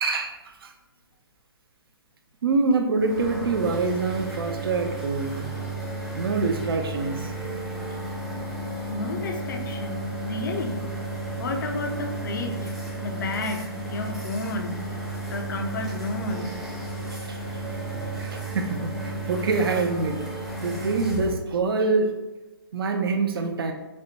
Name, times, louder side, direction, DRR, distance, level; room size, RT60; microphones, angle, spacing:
voice 1, 0.0-0.7 2.4-5.4 6.2-7.3 17.2-17.4 18.2-20.1 20.6-22.1 22.7-23.7, right 4 dB, 65° right, 5 dB, 0.4 m, -25 dB
sound 1, 3.0-21.3, right 2 dB, 5° right, 0.6 m, -33 dB
voice 2, 8.9-10.9 11.4-12.7 13.0-14.8 15.3-16.6, left 2 dB, 50° left, 4 dB, 0.5 m, -31 dB
4.1 x 2.1 x 2.7 m, 1.1 s
hypercardioid pair, 155°, 13 cm